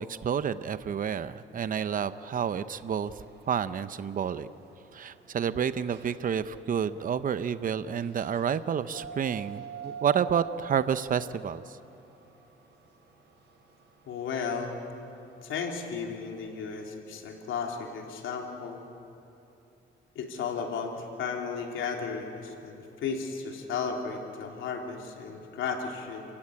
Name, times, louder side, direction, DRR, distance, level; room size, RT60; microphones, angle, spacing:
voice 1, 0.0-3.1 3.5-4.5 4.9-11.8, right 8 dB, 45° right, 13 dB, 0.8 m, -29 dB
sound 1, 1.5-16.5, right 8 dB, 60° right, 5.6 m, -49 dB
voice 2, 14.1-14.8 15.4-18.8 20.1-26.2, left 5 dB, 80° left, 2 dB, 3.3 m, -34 dB
30.0 x 16.0 x 8.7 m, 2.9 s
cardioid pair, 90°, 20 cm